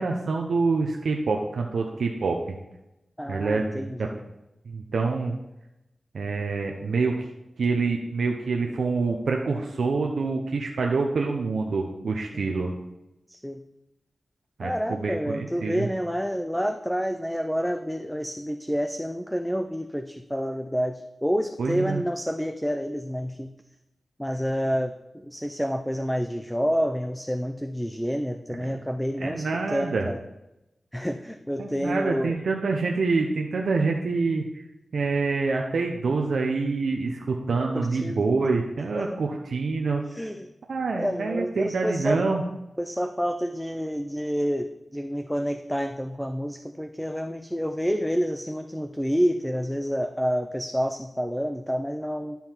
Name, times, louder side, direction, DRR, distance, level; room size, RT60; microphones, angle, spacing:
voice 1, 0.0-2.4 3.3-4.1 4.7-5.3 6.1-7.3 7.6-12.7 14.6-15.9 21.6-22.0 28.6-28.8 29.2-30.1 31.6-34.5 34.9-40.0 40.7-42.4, right 4 dB, 85° right, 1 dB, 0.7 m, -26 dB
voice 2, 3.2-4.2 12.3-12.6 13.3-13.6 14.6-23.5 24.2-24.9 25.2-30.2 30.9-32.4 37.7-38.2 38.9-39.2 40.1-40.5 40.9-42.2 42.8-52.4, equal, ahead, 7 dB, 0.5 m, -28 dB
11.5 x 5.5 x 4.5 m, 0.93 s
wide cardioid pair, 65°, 0 cm